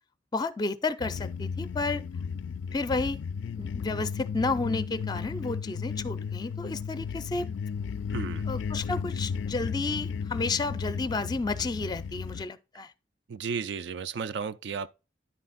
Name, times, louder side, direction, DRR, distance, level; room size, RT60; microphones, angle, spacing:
voice 1, 0.3-2.0 2.7-3.2 3.6-7.5 8.5-12.9, left 3 dB, 20° left, 0.4 m, -31 dB
sound 1, 1.0-12.5, left 6 dB, 80° left, 0.3 m, -34 dB
voice 2, 8.1-8.5 13.3-14.9, right 5 dB, 70° right, 0.4 m, -34 dB
10.0 x 4.2 x 4.0 m
head